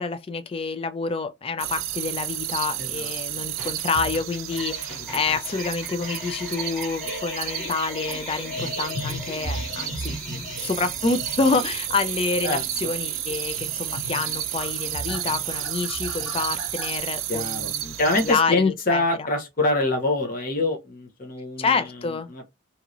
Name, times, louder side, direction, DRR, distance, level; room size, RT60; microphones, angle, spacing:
voice 1, 0.0-10.1 10.6-19.3 21.6-22.3, left 4 dB, 25° left, 0.3 m, -28 dB
sound 1, 1.6-18.4, right 13 dB, 80° right, 0.5 m, -32 dB
sound 2, 3.6-17.0, equal, ahead, 1.6 m, -36 dB
voice 2, 12.4-12.9 17.3-17.7 18.0-21.8 22.3-22.5, left 2 dB, 45° left, 0.7 m, -25 dB
2.9 x 2.7 x 2.5 m
head